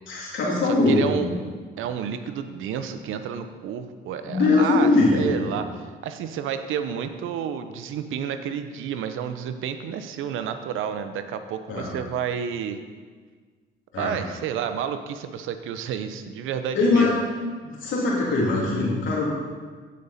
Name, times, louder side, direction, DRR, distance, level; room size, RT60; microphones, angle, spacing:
voice 1, 0.1-1.3 4.2-5.5 11.7-11.9 13.9-14.2 16.7-17.1 17.8-19.2, left 3 dB, 80° left, -4 dB, 3.0 m, -21 dB
voice 2, 0.6-1.3 1.8-12.8 14.0-17.2, right 8 dB, 85° right, 9 dB, 0.7 m, -30 dB
15.0 x 5.3 x 4.2 m, 1.5 s
cardioid pair, 90°, 20 cm